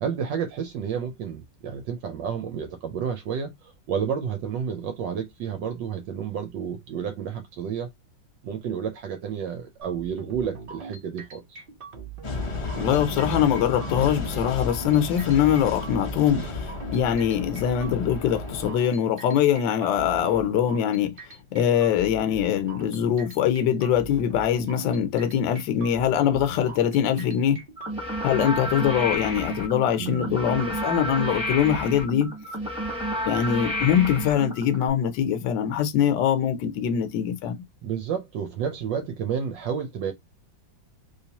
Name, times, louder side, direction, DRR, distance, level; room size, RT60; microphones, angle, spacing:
voice 1, 0.0-7.9 8.4-11.6 30.0-30.5 37.8-40.1, right 7 dB, 75° right, 1.3 m, -31 dB
sound 1, 9.8-27.9, right 5 dB, 50° right, 0.7 m, -42 dB
sound 2, 12.2-18.7, left 3 dB, 40° left, 0.4 m, -33 dB
voice 2, 12.8-21.2 21.5-27.6 28.2-32.3 33.3-37.6, left 9 dB, 75° left, 1.3 m, -23 dB
sound 3, 27.8-34.9, equal, 5° right, 1.0 m, -30 dB
3.2 x 3.1 x 2.8 m
omnidirectional pair, 2.1 m